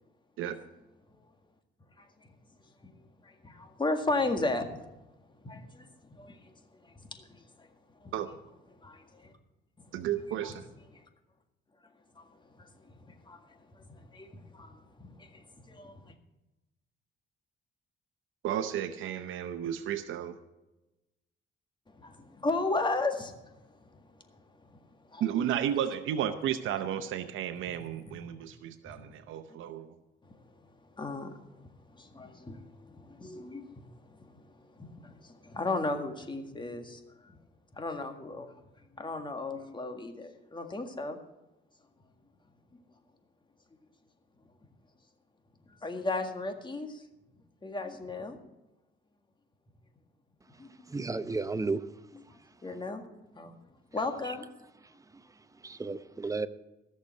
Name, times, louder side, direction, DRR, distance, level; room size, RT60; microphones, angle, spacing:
voice 1, 3.4-4.8 5.4-5.8 6.2-6.4 7.1-7.2 8.0-8.1 8.8-9.3 10.4-10.5 12.2-12.3 12.6-12.7 13.1-13.4 14.1-14.7 15.0-16.0 22.0-23.3 25.1-25.2 31.0-31.4 32.0-32.6 32.9-33.8 34.8-34.9 35.2-37.0 37.8-38.5 39.0-41.2 45.8-47.0 47.6-48.4 50.6-50.9 52.6-53.0 53.4-53.5 53.9-54.5, left 2 dB, 25° left, 1.8 m, -34 dB
voice 2, 9.9-10.7 18.4-20.4 25.2-29.9, right 10 dB, 85° right, 0.8 m, -33 dB
voice 3, 50.9-51.8 54.2-54.4 55.6-56.5, right 3 dB, 15° right, 0.7 m, -33 dB
15.0 x 6.8 x 7.6 m
cardioid pair, 90°, 20 cm